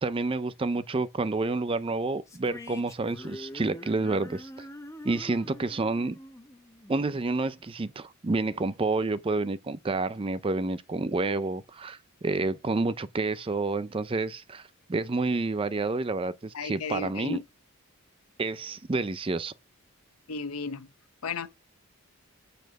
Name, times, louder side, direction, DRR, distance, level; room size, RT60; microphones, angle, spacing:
voice 1, 0.0-4.7 5.0-6.2 6.9-17.4 18.4-19.5, right 3 dB, 25° right, 0.4 m, -29 dB
sound 1, 2.3-7.6, left 1 dB, 15° left, 1.0 m, -45 dB
voice 2, 16.5-17.4 20.3-20.9 21.2-21.5, left 4 dB, 80° left, 0.9 m, -34 dB
9.2 x 4.2 x 5.2 m
head